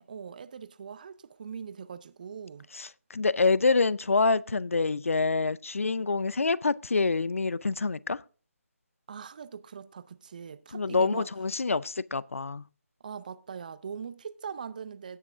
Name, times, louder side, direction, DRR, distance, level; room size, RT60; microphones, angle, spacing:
voice 1, 0.0-2.7 9.1-11.3 13.0-15.2, right 6 dB, 35° right, 0.5 m, -41 dB
voice 2, 2.7-8.2 10.7-12.6, left 4 dB, 65° left, 0.5 m, -26 dB
17.0 x 5.9 x 3.7 m
figure-of-eight pair, 155°, 8 cm